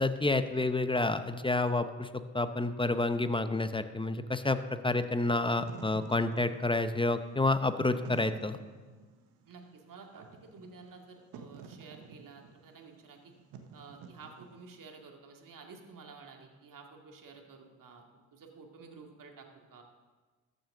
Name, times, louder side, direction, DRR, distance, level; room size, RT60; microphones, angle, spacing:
voice 1, 0.0-8.6, left 2 dB, 15° left, 11 dB, 0.8 m, -29 dB
Wind / Fire, 5.5-14.9, right 5 dB, 80° right, 1.2 m, -50 dB
voice 2, 9.4-13.3 13.7-19.8, right 4 dB, 50° right, 2 dB, 2.3 m, -52 dB
14.0 x 6.7 x 6.2 m, 1.3 s
supercardioid pair, 60°, 40 cm